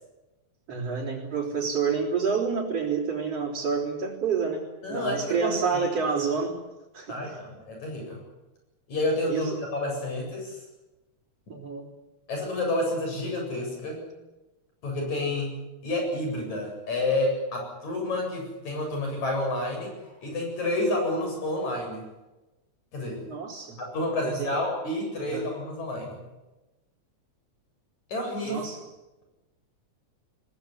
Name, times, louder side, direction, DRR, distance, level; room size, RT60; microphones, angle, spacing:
voice 1, 0.7-4.6 4.9-6.6 6.9-7.4 9.3-9.6 11.5-11.9 23.3-23.8 24.2-24.5 25.2-25.5 28.4-28.8, right 5 dB, 50° right, -7 dB, 5.0 m, -28 dB
voice 2, 4.8-6.0 7.1-8.2 8.9-10.6 12.3-14.1 14.8-15.6 15.8-22.0 22.9-23.2 23.8-26.2 28.1-28.7, left 1 dB, 70° left, 2 dB, 9.3 m, -29 dB
22.0 x 19.0 x 9.6 m, 1.0 s
omnidirectional pair, 3.4 m